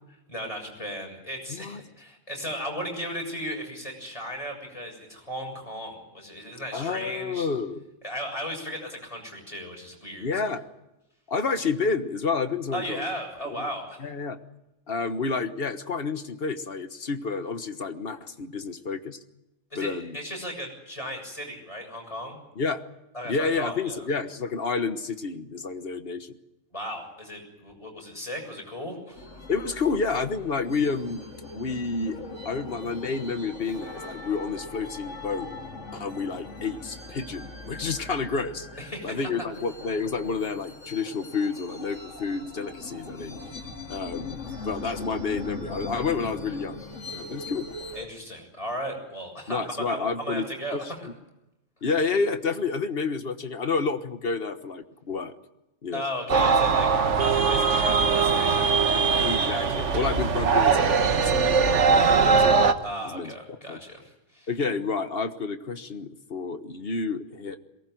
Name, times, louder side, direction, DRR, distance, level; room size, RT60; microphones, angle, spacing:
voice 1, 0.3-7.5 8.0-10.3 12.7-14.0 19.7-22.4 23.1-24.1 26.7-29.3 38.8-39.2 47.9-51.1 55.9-56.9 57.1-58.9 62.8-64.5, equal, 25° left, 1 dB, 7.1 m, -36 dB
voice 2, 1.5-1.8 6.7-7.8 10.2-10.7 11.3-13.1 13.4-13.7 14.0-14.4 14.9-19.2 19.7-20.2 22.6-22.8 23.2-26.3 29.5-31.2 31.5-32.2 32.4-35.5 35.9-38.7 39.0-43.4 43.9-46.8 47.1-47.7 49.5-50.5 50.7-50.9 51.8-55.3 55.8-56.0 56.3-56.4 59.2-62.6 63.0-63.3 63.7-63.8 64.5-67.6, left 4 dB, 50° left, 9 dB, 1.5 m, -30 dB
sound 1, 29.1-48.1, left 3 dB, 65° left, 3.2 m, -40 dB
sound 2, 56.3-62.7, right 5 dB, 70° right, 1.6 m, -21 dB
22.5 x 19.0 x 9.2 m, 0.94 s
omnidirectional pair, 1.3 m